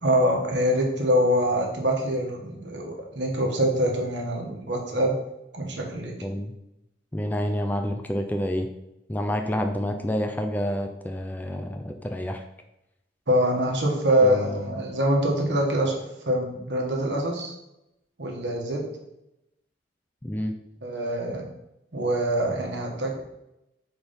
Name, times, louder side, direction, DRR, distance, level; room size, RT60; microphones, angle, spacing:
voice 1, 0.0-5.2 5.5-6.1 13.3-17.5 18.2-18.8 20.8-21.5 21.9-23.2, equal, 70° right, 0 dB, 1.4 m, -24 dB
voice 2, 6.2-6.5 7.1-8.7 9.1-12.4 14.2-14.6 20.2-20.5, equal, 10° left, 5 dB, 0.4 m, -28 dB
4.5 x 4.3 x 5.1 m, 0.87 s
head